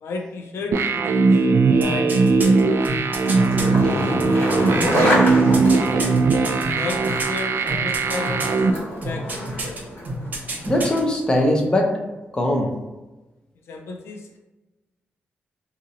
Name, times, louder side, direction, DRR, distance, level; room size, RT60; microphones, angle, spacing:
voice 1, 0.0-1.3 1.8-2.6 6.0-8.6 9.0-9.8 13.7-14.4, left 3 dB, 85° left, 3 dB, 0.4 m, -33 dB
sound 1, 0.7-8.7, right 4 dB, 70° right, 0.3 m, -19 dB
sound 2, 1.8-3.7 4.2-7.4 7.7-8.6 9.0-9.8 10.0-11.0 11.3-11.4, right 2 dB, 45° right, 0.7 m, -29 dB
Skateboard, 2.8-11.2, equal, 60° left, 1.3 m, -27 dB
voice 2, 3.5-4.9 10.7-11.9 12.3-12.7, left 1 dB, 20° left, 1 dB, 0.6 m, -22 dB
2.7 x 2.5 x 4.0 m, 1.1 s
wide cardioid pair, 130°, 4 cm